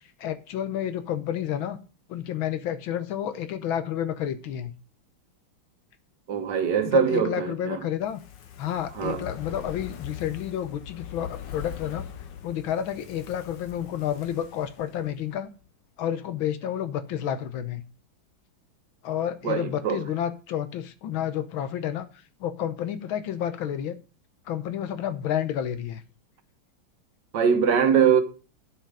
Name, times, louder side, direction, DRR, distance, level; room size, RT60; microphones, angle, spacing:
voice 1, 0.2-1.8 2.1-4.7 6.9-8.2 8.6-12.1 12.4-15.5 16.0-17.8 19.0-22.1 22.4-24.0 24.5-26.0, left 10 dB, 85° left, 1.7 m, -30 dB
voice 2, 6.3-7.8 8.9-9.2 19.4-20.0 27.3-28.2, right 7 dB, 65° right, 1.7 m, -22 dB
Fire, 8.0-15.4 15.7-15.8, left 9 dB, 65° left, 1.6 m, -41 dB
9.2 x 7.4 x 4.9 m
omnidirectional pair, 2.2 m